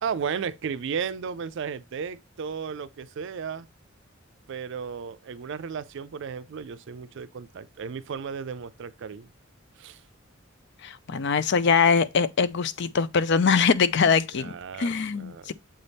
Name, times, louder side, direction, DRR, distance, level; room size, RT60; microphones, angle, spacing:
voice 1, 0.0-3.7 4.5-9.3 9.8-10.0 14.3-15.5, right 6 dB, 65° right, 0.4 m, -34 dB
voice 2, 10.8-15.5, left 5 dB, 60° left, 0.5 m, -23 dB
7.7 x 3.4 x 4.0 m
head